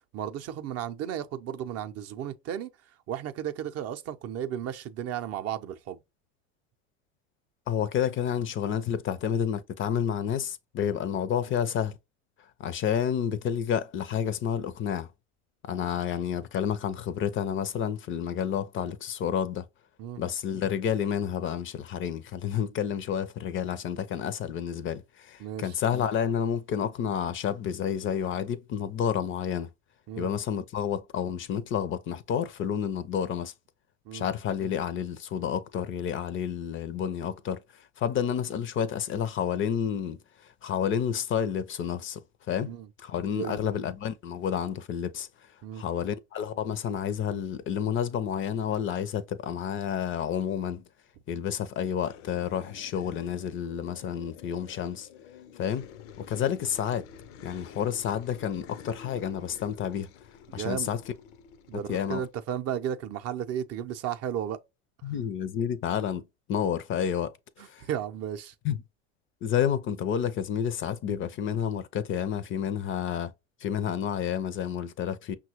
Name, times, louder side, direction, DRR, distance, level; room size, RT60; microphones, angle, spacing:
voice 1, 0.1-2.7 3.1-6.0 20.0-20.2 25.4-25.7 30.1-30.3 34.1-34.2 42.7-42.9 43.3-43.6 45.6-45.8 60.5-60.9 61.7-64.6 67.8-68.5, right 10 dB, 40° right, 0.5 m, -34 dB
voice 2, 7.7-12.0 12.6-15.1 15.6-19.7 20.2-29.7 30.2-33.5 34.1-42.7 43.0-50.8 51.3-55.1 55.5-55.9 56.2-57.0 57.4-60.1 60.5-61.0 61.9-62.3 65.0-67.9 68.6-68.8 69.4-73.3 73.6-75.4, left 8 dB, 35° left, 0.5 m, -30 dB
sound 1, 52.0-62.3, left 7 dB, 75° left, 0.7 m, -49 dB
5.8 x 2.3 x 2.8 m
hypercardioid pair, 85°, 37 cm